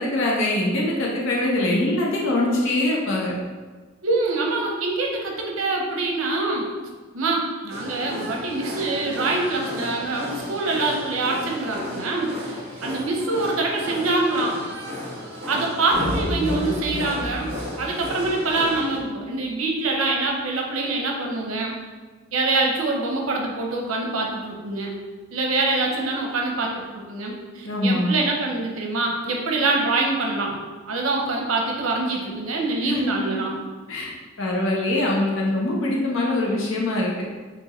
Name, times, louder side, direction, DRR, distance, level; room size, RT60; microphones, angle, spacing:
voice 1, 0.0-3.3 27.6-28.1 32.8-33.2 33.9-34.1 34.4-37.2, left 1 dB, 70° left, -3 dB, 0.9 m, -23 dB
voice 2, 4.0-6.6 7.1-14.5 15.5-17.5 17.8-21.7 22.3-25.0 25.3-30.6 30.9-33.5, right 2 dB, 90° right, 0 dB, 0.8 m, -25 dB
sound 1, 7.7-19.0, equal, 50° right, 1.2 m, -34 dB
sound 2, 15.9-19.0, left 1 dB, 25° left, 0.7 m, -30 dB
6.0 x 2.6 x 3.1 m, 1.4 s
head